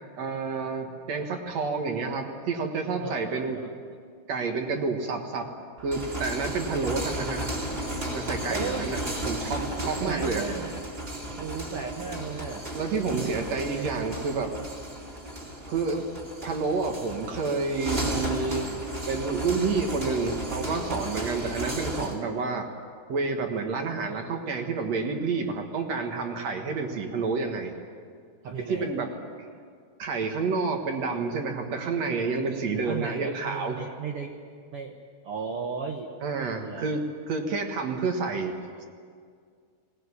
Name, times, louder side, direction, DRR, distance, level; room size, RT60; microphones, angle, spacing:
voice 1, 0.2-3.6 4.3-5.5 5.8-7.5 8.1-9.0 9.3-10.4 12.7-14.5 15.7-16.1 16.4-18.7 19.1-22.7 23.1-27.7 28.6-29.1 30.0-33.9 36.2-38.9, right 4 dB, 55° right, 4 dB, 2.3 m, -29 dB
voice 2, 3.0-3.7 8.5-8.9 9.8-10.9 11.4-12.7 13.1-13.9 28.4-28.9 32.9-34.3 34.7-35.0 35.2-36.1 36.6-36.8, right 5 dB, 75° right, 3 dB, 1.3 m, -35 dB
sound 1, 5.8-22.2, right 1 dB, 15° right, 2.3 m, -34 dB
20.0 x 19.0 x 9.8 m, 2.2 s
omnidirectional pair, 4.5 m